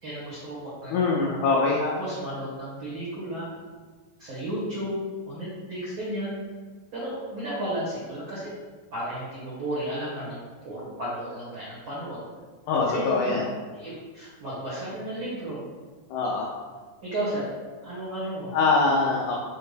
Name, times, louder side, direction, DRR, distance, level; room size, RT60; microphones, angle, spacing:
voice 1, 0.0-1.4 1.8-3.5 4.2-5.0 5.3-6.4 6.9-8.5 8.9-12.2 12.9-13.4 13.7-15.6 16.1-16.3 17.0-17.4 17.8-18.5, right 1 dB, 90° right, -10 dB, 1.1 m, -33 dB
voice 2, 0.9-1.8 12.7-13.4 16.1-16.5 18.5-19.4, left 3 dB, 90° left, -2 dB, 1.7 m, -23 dB
5.5 x 2.2 x 3.2 m, 1.4 s
omnidirectional pair, 4.0 m